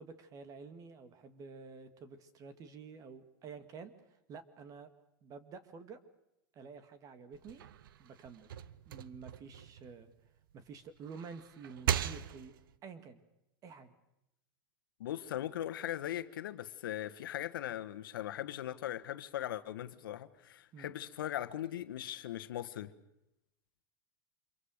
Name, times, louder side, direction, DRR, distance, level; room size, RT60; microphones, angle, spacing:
voice 1, 0.0-4.9 5.2-6.0 6.5-7.6 8.0-8.5 8.9-10.1 10.5-12.5 12.8-13.2 13.6-13.9 20.7-21.0, right 5 dB, 30° right, 2.2 m, -50 dB
sound 1, 7.3-10.5 11.0-12.8, right 10 dB, 85° right, 1.0 m, -39 dB
voice 2, 15.0-22.9, left 12 dB, 85° left, 1.5 m, -39 dB
26.0 x 23.0 x 6.6 m
supercardioid pair, 140°, 11 cm